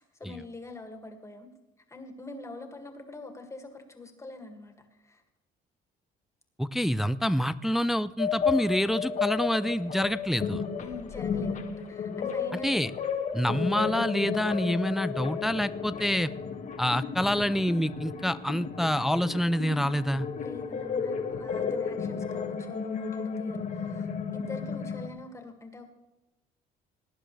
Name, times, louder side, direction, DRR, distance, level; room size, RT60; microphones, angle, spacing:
voice 1, 0.0-1.5 1.9-5.2 10.8-12.9 13.3-13.5 20.4-25.9, left 2 dB, 15° left, 5 dB, 2.2 m, -44 dB
voice 2, 6.6-10.6 12.6-12.9 13.3-16.3 16.8-20.3, equal, ahead, 13 dB, 0.4 m, -27 dB
sound 1, 8.2-25.1, left 6 dB, 45° left, 1.4 m, -33 dB
19.0 x 10.5 x 3.3 m, 1.0 s
cardioid pair, 110°, 17 cm